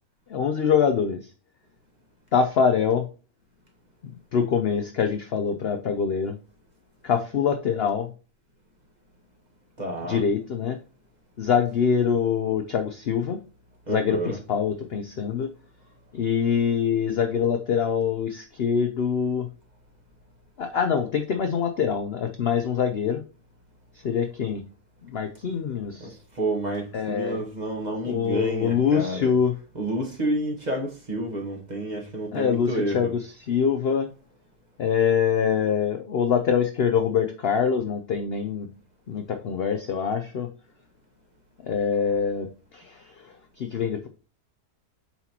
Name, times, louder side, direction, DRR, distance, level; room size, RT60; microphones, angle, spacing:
voice 1, 0.3-1.2 2.3-3.1 4.3-6.4 7.0-8.1 10.1-10.8 11.4-13.4 13.9-15.5 16.1-19.5 20.6-23.2 24.0-24.6 25.1-26.2 26.9-27.4 28.1-29.5 32.3-34.1 34.8-38.7 39.1-40.5 41.6-42.5 42.7-42.8 43.6-44.1, left 7 dB, 60° left, 0.6 m, -24 dB
voice 2, 9.8-10.2 13.9-14.4 26.0-29.3 29.7-33.1, right 1 dB, 30° right, 1.4 m, -30 dB
7.9 x 4.4 x 2.8 m
omnidirectional pair, 1.6 m